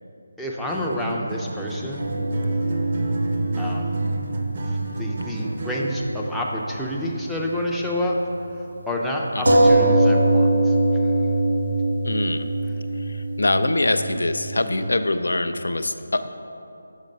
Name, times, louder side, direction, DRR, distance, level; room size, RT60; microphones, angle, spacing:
voice 1, 0.4-2.1 3.6-4.0 4.6-8.2 8.9-10.7 11.0-11.1 14.6-14.9, left 1 dB, ahead, -5 dB, 0.5 m, -28 dB
Acoustic guitar, 0.7-6.1, right 2 dB, 40° right, 0.6 m, -31 dB
sound 1, 2.0-5.9 6.1-6.2 9.5-14.7, right 1 dB, 70° right, 1.2 m, -22 dB
voice 2, 12.0-12.4 13.4-16.3, left 2 dB, 70° left, 9 dB, 0.4 m, -23 dB
6.4 x 5.1 x 5.2 m, 2.7 s
figure-of-eight pair, 160°, 0 cm